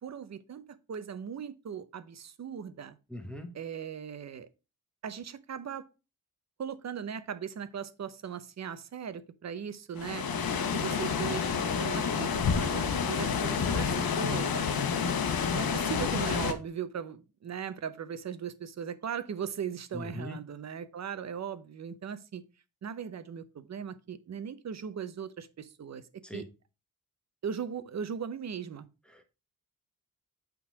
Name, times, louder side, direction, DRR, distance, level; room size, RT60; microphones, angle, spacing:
voice 1, 0.0-3.0 3.5-4.5 5.0-5.9 6.6-10.2 10.7-11.5 11.8-14.7 15.5-22.4 22.8-26.0 26.3-26.5 27.4-28.9, right 7 dB, 50° right, 0.7 m, -38 dB
voice 2, 3.1-3.5 19.9-20.4 26.2-26.4, left 1 dB, 5° left, 1.1 m, -40 dB
sound 1, 10.0-16.5, left 6 dB, 80° left, 1.2 m, -29 dB
8.8 x 3.9 x 4.6 m
wide cardioid pair, 175°, 35 cm